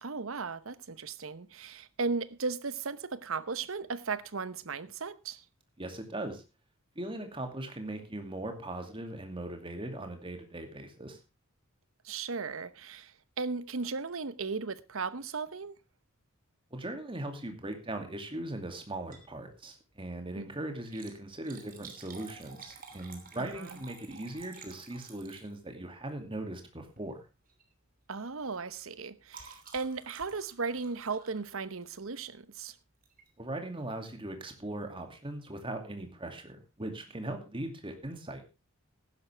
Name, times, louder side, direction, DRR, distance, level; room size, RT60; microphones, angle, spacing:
voice 1, 0.0-5.4 12.0-15.8 20.4-20.5 23.4-23.8 28.1-32.8, right 4 dB, 70° right, 0.9 m, -36 dB
voice 2, 5.8-6.4 6.9-11.2 16.7-27.2 33.4-38.4, right 1 dB, 25° right, 2.5 m, -39 dB
Liquid, 19.1-19.4 19.7-19.8 20.7-25.9 26.8-27.1 27.5-27.7 28.0-32.1 33.0-33.3 33.8-33.9 34.1-34.2, right 5 dB, 40° right, 3.0 m, -52 dB
15.0 x 11.5 x 3.4 m
head